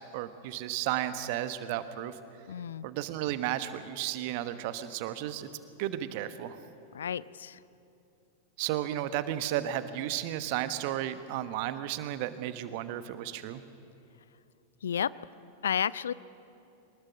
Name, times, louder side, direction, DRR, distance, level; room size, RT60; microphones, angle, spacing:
voice 1, 0.1-2.2 2.8-5.5 5.8-6.6 8.6-13.6, right 12 dB, 45° right, 12 dB, 1.1 m, -33 dB
voice 2, 2.5-2.9 6.9-7.6 14.8-15.1 15.6-16.1, left 8 dB, 65° left, 20 dB, 0.4 m, -31 dB
23.5 x 19.5 x 6.3 m, 2.7 s
figure-of-eight pair, 90°, 0 cm